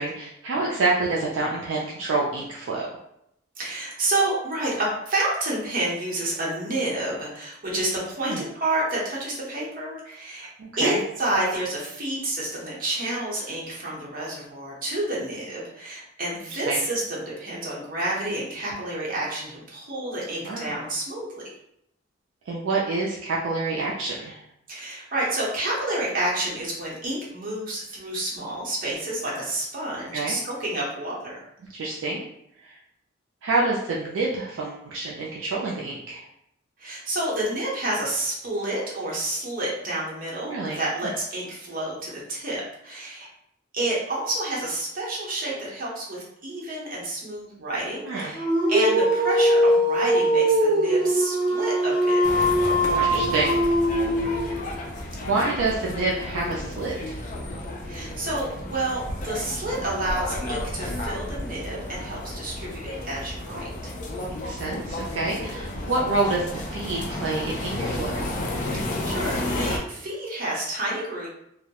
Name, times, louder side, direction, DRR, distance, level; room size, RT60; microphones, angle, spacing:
voice 1, 0.0-2.9 8.2-8.5 10.6-11.0 16.5-16.8 20.4-20.8 22.5-24.4 30.1-30.4 31.7-32.3 32.6-32.8 33.4-36.2 40.4-40.8 48.1-48.4 53.1-53.5 55.3-57.2 64.4-68.3, right 3 dB, 70° right, -4 dB, 0.4 m, -27 dB
voice 2, 3.6-10.5 10.8-21.4 24.7-31.5 36.8-43.3 43.7-53.5 54.0-54.4 57.8-63.7 68.7-71.3, right 1 dB, 45° right, -5 dB, 0.8 m, -29 dB
Dog, 48.3-54.7, equal, 25° left, 0.8 m, -21 dB
sound 1, 52.2-69.8, left 1 dB, 40° left, 0.4 m, -32 dB
2.2 x 2.0 x 2.8 m, 0.77 s
head